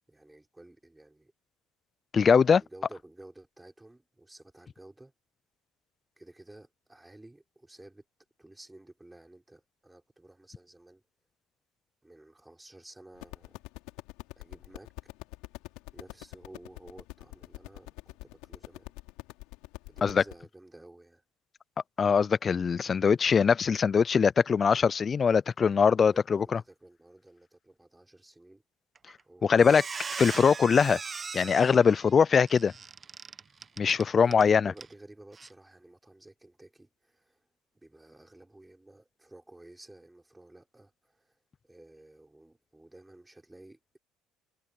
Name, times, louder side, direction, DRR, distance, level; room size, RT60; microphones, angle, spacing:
voice 1, 0.1-1.3 2.5-5.1 6.2-8.0 8.4-11.0 12.0-13.6 14.4-14.9 15.9-18.9 19.8-21.2 26.1-28.6 29.3-29.7 34.2-37.5 37.7-44.0, right 1 dB, 10° right, 6.1 m, -53 dB
voice 2, 2.1-2.6 20.0-20.2 22.0-26.6 29.4-29.8 30.1-31.0 31.3-32.7 33.8-34.7, left 6 dB, 35° left, 0.6 m, -22 dB
sound 1, 13.2-20.4, left 23 dB, 70° left, 3.8 m, -45 dB
Squeak, 29.0-29.2 29.5-34.5 34.8-34.9 35.3-35.5, right 5 dB, 30° right, 1.1 m, -40 dB
hypercardioid pair, 65°, 0 cm